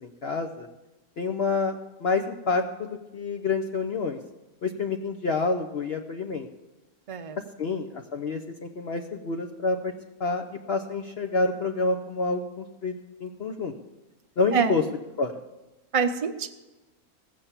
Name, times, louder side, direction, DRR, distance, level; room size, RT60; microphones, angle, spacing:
voice 1, 0.0-0.7 1.2-4.2 4.6-6.5 7.6-9.9 10.2-12.9 13.2-13.7 14.4-14.8 15.2-15.3, left 3 dB, 55° left, 5 dB, 0.8 m, -28 dB
voice 2, 15.9-16.5, right 6 dB, 35° right, 7 dB, 0.6 m, -25 dB
16.5 x 6.8 x 7.3 m, 1.0 s
omnidirectional pair, 1.5 m